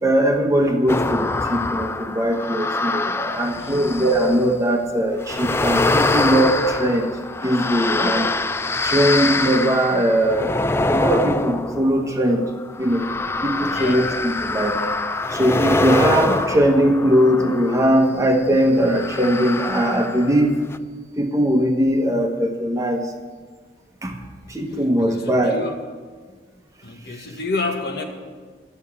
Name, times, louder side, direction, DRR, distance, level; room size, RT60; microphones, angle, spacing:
voice 1, 0.0-7.2 7.4-8.4 8.8-12.5 12.8-13.1 13.4-14.8 15.3-20.6 21.2-23.1 24.0-24.2 24.5-25.6, equal, 15° right, 3 dB, 1.0 m, -20 dB
sound 1, 0.9-4.6 5.2-18.0 18.8-20.4 20.7-20.8, left 2 dB, 15° left, 0.3 m, -24 dB
voice 2, 3.1-3.9 13.6-14.0 25.0-25.8 26.8-28.0, left 3 dB, 60° left, 3 dB, 1.5 m, -30 dB
12.0 x 7.0 x 8.5 m, 1.5 s
head